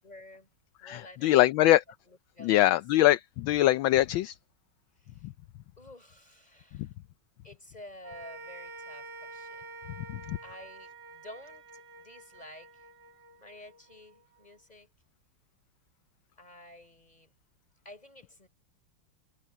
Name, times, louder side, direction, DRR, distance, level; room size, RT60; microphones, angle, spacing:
voice 1, 0.0-0.5 0.8-1.8 2.0-2.7 5.0-5.3 5.8-6.9 7.4-9.7 10.4-12.9 13.4-14.9 16.4-17.3 17.8-18.5, left 1 dB, 20° left, 6.2 m, -51 dB
voice 2, 0.8-1.8 2.4-4.3 5.2-5.3 10.3-10.4, left 14 dB, 75° left, 1.3 m, -23 dB
sound 1, 8.0-14.5, right 3 dB, 60° right, 2.8 m, -48 dB
omnidirectional pair, 2.3 m